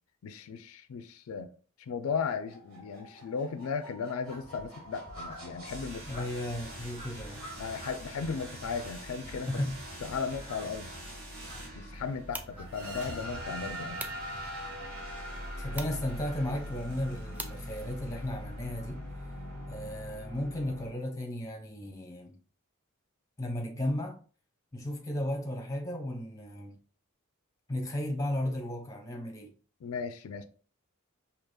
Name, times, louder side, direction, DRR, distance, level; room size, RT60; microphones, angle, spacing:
voice 1, 0.2-1.5 1.8-6.3 7.6-9.6 10.0-10.9 11.8-14.0 29.8-30.5, left 5 dB, 80° left, 0.4 m, -36 dB
sound 1, 2.1-20.9, equal, 70° right, 1.4 m, -42 dB
sound 2, 4.3-13.0, right 1 dB, 30° right, 1.5 m, -51 dB
voice 2, 6.1-7.4 9.5-9.8 15.6-19.0 19.7-22.3 23.4-24.2 24.7-26.7 27.7-29.5, left 1 dB, 15° left, 0.8 m, -34 dB
sound 3, 11.9-18.3, right 1 dB, 10° right, 0.3 m, -48 dB
4.8 x 2.9 x 2.2 m
head